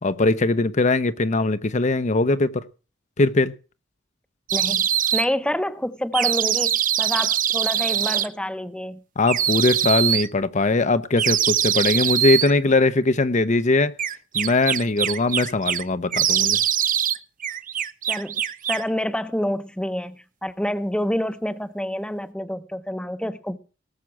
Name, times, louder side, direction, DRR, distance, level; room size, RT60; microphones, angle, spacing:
voice 1, 0.0-2.6 3.2-3.5 9.2-14.0 14.3-16.6, left 2 dB, 35° left, 0.7 m, -21 dB
voice 2, 4.5-9.0 18.1-18.4 18.7-23.6, left 1 dB, 5° left, 0.8 m, -28 dB
sound 1, 4.5-5.3 6.1-8.3 9.3-10.3 11.2-12.5 14.0-15.8 16.1-17.2 17.4-18.9, right 10 dB, 40° right, 0.8 m, -22 dB
19.0 x 7.4 x 6.0 m
head